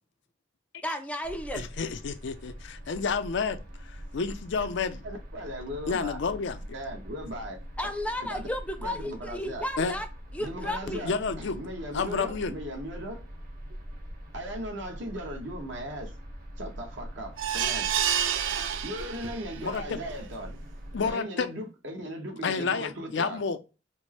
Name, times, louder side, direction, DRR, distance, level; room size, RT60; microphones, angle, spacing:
voice 1, 0.8-1.6 7.8-10.1 10.3-11.1, left 1 dB, 5° left, 0.5 m, -33 dB
sound 1, 1.2-21.1, equal, 50° right, 1.3 m, -43 dB
voice 2, 1.5-5.0 5.9-6.6 9.8-9.9 11.0-11.6 11.9-12.5 19.6-20.0 20.9-21.5 22.4-23.6, left 5 dB, 65° left, 0.5 m, -30 dB
voice 3, 5.0-6.2 6.7-7.6 8.3-8.5 8.8-9.6 10.5-13.2 14.3-16.1 16.6-17.9 18.8-20.6 21.0-23.4, equal, 65° right, 1.1 m, -38 dB
sound 2, 17.4-19.6 20.1-20.2 20.5-20.6, right 9 dB, 90° right, 0.4 m, -29 dB
4.3 x 2.1 x 2.9 m
head